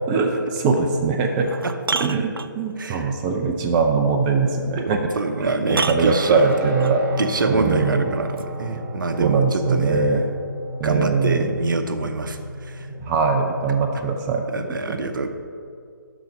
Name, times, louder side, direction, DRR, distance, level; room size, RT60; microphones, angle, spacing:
voice 1, 0.1-1.5 2.0-5.0 5.4-7.0 7.5-8.1 9.2-10.3 10.8-11.6 13.0-15.0, right 4 dB, 20° right, 3 dB, 0.5 m, -21 dB
sound 1, 0.8-0.9 1.4-2.9 4.9-5.0 5.7-7.0 8.4-8.5, right 4 dB, 90° right, 0.4 m, -29 dB
voice 2, 2.8-3.1 4.8-6.5 7.2-10.3 10.8-12.9 14.5-15.3, right 3 dB, 65° right, 7 dB, 0.8 m, -25 dB
Guitar, 6.0-14.1, right 1 dB, 45° right, 1.7 m, -35 dB
12.0 x 4.0 x 5.1 m, 2.3 s
figure-of-eight pair, 140°, 11 cm